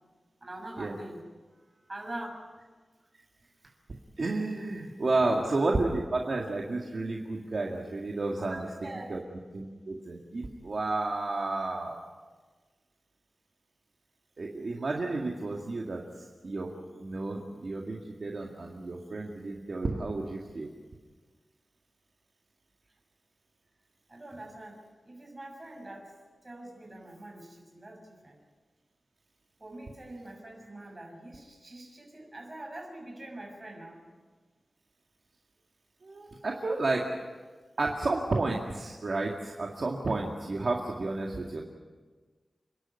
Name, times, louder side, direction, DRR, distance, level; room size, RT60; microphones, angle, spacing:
voice 1, 0.4-1.2 1.5-2.4 3.6-3.7 5.2-5.3 8.4-9.1 24.1-26.2 26.4-28.4 29.6-34.0, right 1 dB, 25° right, 0 dB, 6.7 m, -44 dB
voice 2, 4.2-8.7 9.1-9.2 9.5-12.0 14.4-20.7 36.0-37.0 37.8-41.6, right 2 dB, 50° right, 0 dB, 2.1 m, -31 dB
30.0 x 11.5 x 9.9 m, 1.4 s
wide cardioid pair, 120°, 0 cm